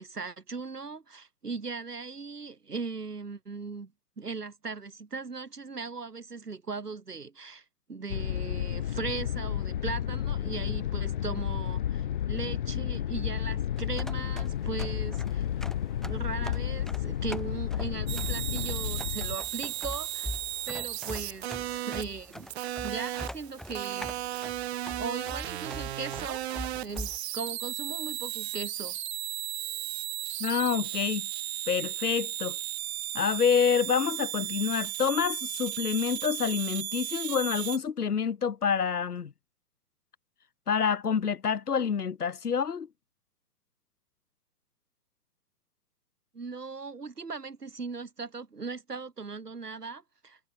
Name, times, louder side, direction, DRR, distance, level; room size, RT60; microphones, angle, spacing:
voice 1, 0.0-3.9 4.2-15.5 16.1-20.3 20.7-22.5 22.8-24.1 25.0-26.4 26.8-29.0 46.3-50.4, right 4 dB, 85° right, 3.5 m, -38 dB
sound 1, 8.1-19.4, left 10 dB, 35° left, 0.4 m, -32 dB
sound 2, 13.8-27.2, left 1 dB, ahead, 2.7 m, -43 dB
sound 3, 18.1-37.8, right 14 dB, 45° right, 1.6 m, -35 dB
voice 2, 30.4-31.3 31.7-32.6 33.1-39.3 40.7-42.9, left 6 dB, 80° left, 1.6 m, -27 dB
figure-of-eight pair, 125°, 45 cm